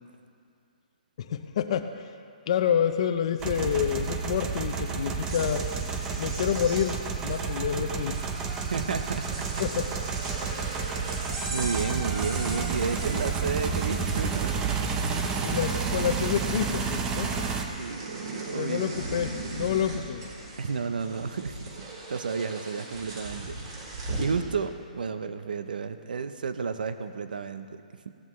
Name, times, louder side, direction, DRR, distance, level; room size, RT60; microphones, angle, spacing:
voice 1, 1.2-1.9 2.5-5.7 6.2-8.2 9.6-9.9 15.4-17.5 18.5-20.3, left 8 dB, 40° left, 7 dB, 0.6 m, -28 dB
sound 1, 3.4-17.7, right 5 dB, 15° right, 0.6 m, -30 dB
sound 2, 5.2-15.1 15.4-16.1 16.3-24.4, right 2 dB, 40° right, 3.6 m, -39 dB
voice 2, 8.7-9.5 11.2-14.8 17.8-19.1 20.6-21.8 22.1-23.6 24.2-28.1, right 5 dB, 85° right, 10 dB, 0.8 m, -32 dB
17.5 x 13.0 x 3.2 m, 2.3 s
hypercardioid pair, 170°, 5 cm